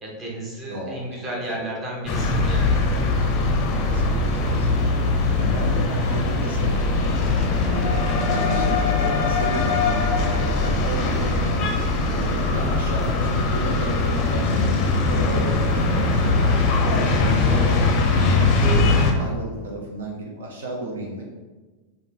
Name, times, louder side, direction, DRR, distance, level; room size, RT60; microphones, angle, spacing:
voice 1, 0.0-2.8, right 1 dB, 25° right, -3 dB, 1.0 m, -33 dB
voice 2, 0.7-1.0 2.7-3.0 3.9-5.0 5.4-7.2 7.6-10.2 10.6-11.6 12.0-16.1 16.8-21.2, right 1 dB, 65° right, -2 dB, 0.6 m, -33 dB
sound 1, 2.1-19.1, left 3 dB, 35° left, 0.5 m, -21 dB
3.8 x 2.5 x 3.6 m, 1.3 s
figure-of-eight pair, 90°, 0 cm